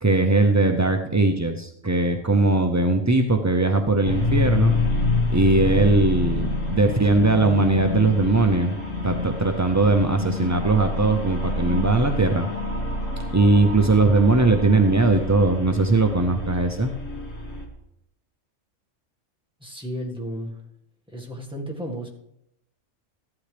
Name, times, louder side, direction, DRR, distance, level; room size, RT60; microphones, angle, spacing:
voice 1, 0.0-4.8 5.3-8.7 9.0-12.5 13.3-16.9, right 3 dB, 25° right, 5 dB, 0.3 m, -20 dB
sound 1, 4.0-17.6, left 2 dB, 80° left, 2.2 m, -27 dB
voice 2, 19.6-20.6 21.1-22.1, equal, 5° right, -1 dB, 1.7 m, -33 dB
14.5 x 11.5 x 3.4 m, 0.81 s
omnidirectional pair, 1.3 m